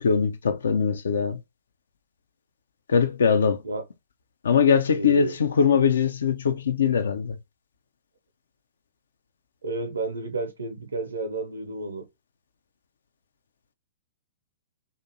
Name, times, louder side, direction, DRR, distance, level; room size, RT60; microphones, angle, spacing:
voice 1, 0.0-1.4 2.9-3.6 4.4-7.4, left 6 dB, 65° left, 0.4 m, -21 dB
voice 2, 4.9-5.3 9.6-12.0, right 3 dB, 75° right, 0.6 m, -31 dB
2.5 x 2.4 x 2.7 m
figure-of-eight pair, 110°, 0 cm